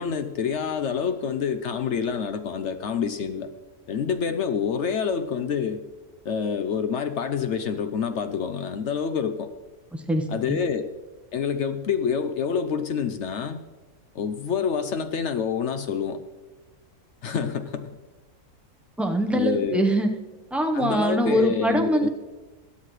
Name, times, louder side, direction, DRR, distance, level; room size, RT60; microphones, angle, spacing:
voice 1, 0.0-3.5 3.9-5.8 6.2-9.5 10.3-10.9 11.3-13.6 14.1-16.2 17.2-17.9 19.3-19.9 20.7-22.1, left 6 dB, 60° left, 10 dB, 0.8 m, -27 dB
voice 2, 9.9-10.6 19.0-20.1 20.5-22.1, equal, ahead, 3 dB, 0.5 m, -23 dB
20.5 x 8.5 x 3.2 m, 1.2 s
omnidirectional pair, 1.6 m